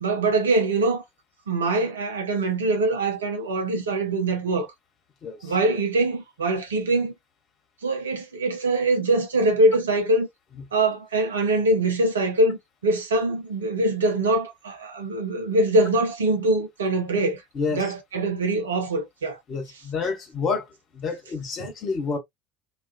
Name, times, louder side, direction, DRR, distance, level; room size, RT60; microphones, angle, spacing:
voice 1, 0.0-1.0 1.5-4.7 5.4-7.1 7.8-10.3 10.7-17.4 17.7-19.4, right 2 dB, 75° right, 0.7 m, -23 dB
voice 2, 5.2-5.5 10.5-10.6 17.5-17.9 19.5-20.7 20.9-22.2, left 4 dB, 40° left, 0.9 m, -29 dB
2.3 x 2.3 x 2.3 m
figure-of-eight pair, 65°, 0 cm